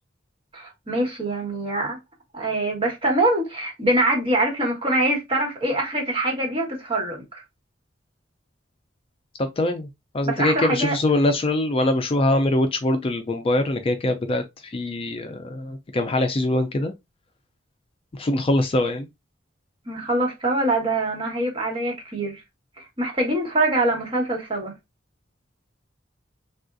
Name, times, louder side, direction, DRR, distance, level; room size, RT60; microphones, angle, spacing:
voice 1, 0.5-2.0 2.3-7.4 10.2-10.9 19.9-22.4 22.8-24.8, right 1 dB, 30° right, 1.4 m, -24 dB
voice 2, 9.4-9.9 10.1-16.9 18.1-19.1, left 1 dB, 30° left, 0.4 m, -23 dB
3.5 x 2.3 x 2.5 m
head